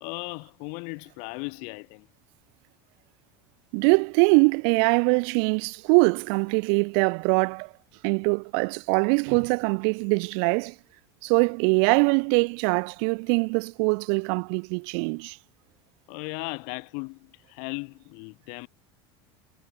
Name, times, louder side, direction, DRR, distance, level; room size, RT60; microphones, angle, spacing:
voice 1, 0.0-2.1 16.1-18.7, left 36 dB, 65° left, 0.4 m, -37 dB
voice 2, 3.7-7.7 8.0-10.7 11.2-15.4, right 40 dB or more, 70° right, 0.4 m, -23 dB
supercardioid pair, 100°, 14 cm